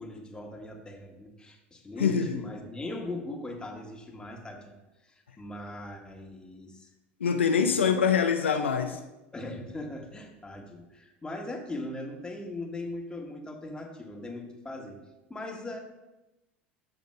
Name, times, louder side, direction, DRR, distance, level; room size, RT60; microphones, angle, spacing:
voice 1, 0.0-4.7 5.0-6.9 7.6-7.9 9.3-15.0 15.3-15.8, left 2 dB, 15° left, 1 dB, 1.4 m, -39 dB
voice 2, 2.0-2.4 7.2-9.0, left 6 dB, 85° left, 5 dB, 0.4 m, -24 dB
14.0 x 5.1 x 2.2 m, 1.0 s
figure-of-eight pair, 75°, 6 cm